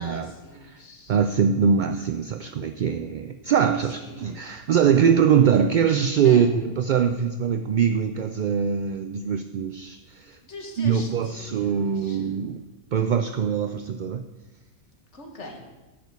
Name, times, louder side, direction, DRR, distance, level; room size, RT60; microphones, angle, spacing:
voice 1, 0.0-1.2 3.8-4.4 6.2-6.5 10.4-12.3 15.1-15.7, left 1 dB, 70° left, 2 dB, 2.0 m, -42 dB
voice 2, 1.1-10.4 10.8-12.6 12.9-14.2, right 7 dB, 60° right, 8 dB, 0.5 m, -22 dB
10.5 x 5.2 x 8.1 m, 1.2 s
omnidirectional pair, 1.3 m